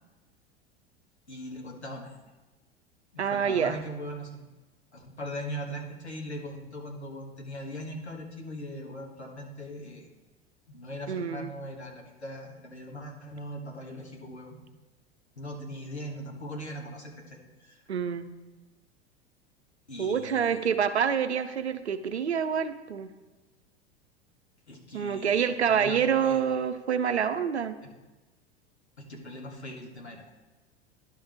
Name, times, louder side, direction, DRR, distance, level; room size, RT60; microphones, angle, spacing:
voice 1, 1.3-2.1 3.1-4.5 4.9-10.1 10.7-14.6 15.4-17.8 19.9-20.7 24.7-26.4 27.8-27.9 29.0-30.2, equal, 90° left, 0 dB, 1.6 m, -40 dB
voice 2, 3.2-3.8 11.1-11.5 17.9-18.3 20.0-23.1 24.9-27.8, right 7 dB, 80° right, 10 dB, 0.7 m, -27 dB
11.0 x 6.3 x 3.5 m, 1.2 s
figure-of-eight pair, 80°, 32 cm